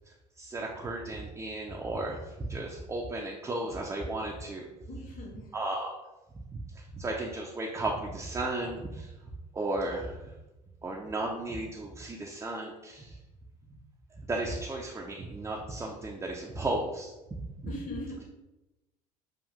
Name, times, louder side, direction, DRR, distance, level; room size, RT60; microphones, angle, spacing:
voice 1, 0.1-4.7 5.5-5.9 6.5-9.1 9.5-10.3 10.8-13.2 14.2-17.7, right 2 dB, 15° right, -1 dB, 0.5 m, -35 dB
voice 2, 4.9-5.5 17.6-18.2, left 1 dB, 40° left, -1 dB, 1.2 m, -40 dB
6.5 x 2.5 x 2.5 m, 1.0 s
figure-of-eight pair, 60°, 21 cm